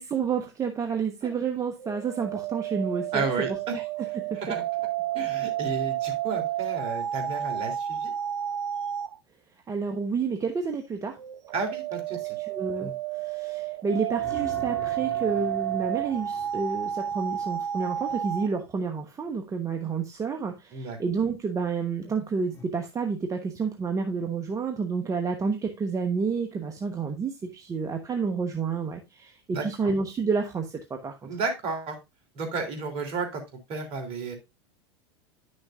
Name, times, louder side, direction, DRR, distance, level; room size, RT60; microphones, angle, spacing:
voice 1, 0.0-4.5 9.7-11.2 12.1-31.3, right 5 dB, 25° right, 1.2 m, -30 dB
sound 1, 1.8-9.2 11.2-18.5, right 11 dB, 85° right, 0.7 m, -31 dB
voice 2, 3.1-3.7 4.3-4.6 5.1-8.1 11.5-12.4 12.8-12.9 20.7-21.0 29.5-29.9 31.2-32.0 32.3-33.4 33.7-34.4, right 4 dB, 45° right, 3.1 m, -32 dB
sound 2, 14.1-18.0 22.5-22.6, left 3 dB, 20° left, 2.1 m, -45 dB
10.5 x 6.5 x 2.5 m
hypercardioid pair, 90°, 14 cm